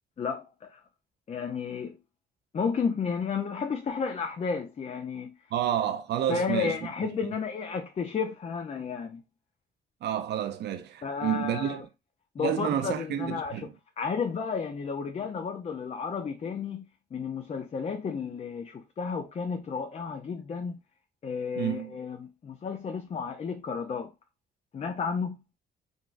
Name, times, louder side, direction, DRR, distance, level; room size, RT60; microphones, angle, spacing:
voice 1, 0.2-0.8 1.3-2.0 2.5-5.3 6.3-9.2 11.0-11.8 12.3-13.7 14.0-16.8 17.1-20.8 21.2-24.1 24.7-25.4, left 5 dB, 35° left, 0.5 m, -32 dB
voice 2, 5.5-7.1 10.0-11.8 12.4-13.7 21.6-21.9, right 9 dB, 60° right, 0.5 m, -30 dB
3.8 x 2.3 x 2.5 m
cardioid pair, 90°, 20 cm